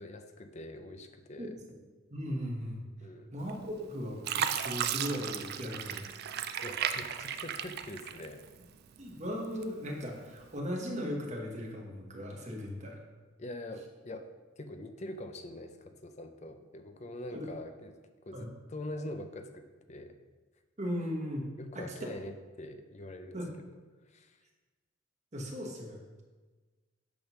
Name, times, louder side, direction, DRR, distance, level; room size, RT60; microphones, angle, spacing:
voice 1, 0.0-1.5 3.0-3.3 6.6-8.4 13.4-14.3 14.6-18.0 18.2-20.2 21.6-23.7 24.1-24.4, left 1 dB, 35° left, 7 dB, 0.5 m, -44 dB
voice 2, 1.4-1.8 2.1-2.9 3.3-6.0 9.0-13.0 17.3-17.5 18.3-18.5 20.8-21.8 23.3-23.5 25.3-26.2, equal, 35° right, 0 dB, 1.3 m, -38 dB
Fill (with liquid), 3.5-3.9 4.2-8.6 9.1-9.9 10.4-10.6, right 9 dB, 50° right, 0.4 m, -35 dB
8.5 x 3.8 x 5.9 m, 1.3 s
head